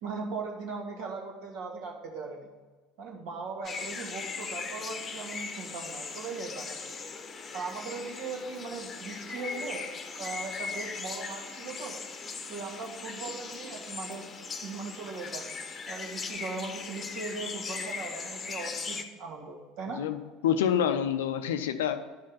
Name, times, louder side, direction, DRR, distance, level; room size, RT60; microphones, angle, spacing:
voice 1, 0.0-2.5 3.0-7.0 7.5-9.8 10.2-12.0 12.5-15.5 15.9-20.0, right 4 dB, 55° right, 0 dB, 1.8 m, -39 dB
sound 1, 3.6-19.0, left 4 dB, 30° left, 0.9 m, -39 dB
voice 2, 20.0-22.0, left 8 dB, 70° left, 10 dB, 0.5 m, -27 dB
11.0 x 5.3 x 5.5 m, 1.3 s
figure-of-eight pair, 65°, 0 cm